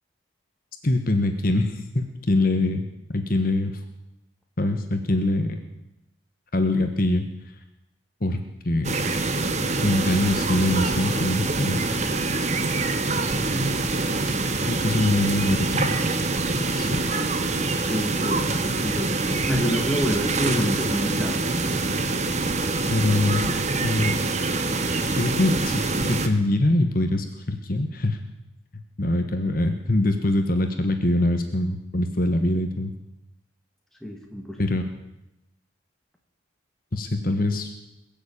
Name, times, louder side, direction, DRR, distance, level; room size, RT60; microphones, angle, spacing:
voice 1, 0.8-2.8 3.1-3.8 4.6-5.6 6.5-7.2 8.2-8.4 8.6-9.0 9.8-11.9 14.2-14.3 14.7-16.0 16.5-17.0 22.9-23.5 23.8-24.1 25.1-28.2 29.0-32.9 34.6-34.9 36.9-37.7, left 1 dB, 45° left, 6 dB, 1.3 m, -23 dB
sound 1, 8.8-26.3, right 3 dB, 35° right, 1.2 m, -25 dB
voice 2, 13.4-13.9 17.8-19.2 19.5-21.4 34.0-34.6, equal, ahead, 1 dB, 2.1 m, -28 dB
21.5 x 7.3 x 8.7 m, 0.89 s
head